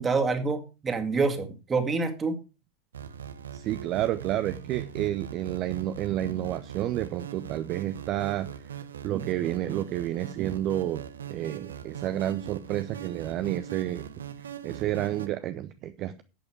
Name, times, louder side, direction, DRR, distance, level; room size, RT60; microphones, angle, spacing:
voice 1, 0.0-2.4, right 4 dB, 20° right, 5 dB, 2.2 m, -27 dB
sound 1, 2.9-15.3, right 9 dB, 65° right, 1.0 m, -40 dB
voice 2, 3.5-11.0 11.3-14.1 14.6-16.2, right 13 dB, 35° right, 11 dB, 0.7 m, -30 dB
11.5 x 8.6 x 4.7 m, 0.31 s
figure-of-eight pair, 90°, 0 cm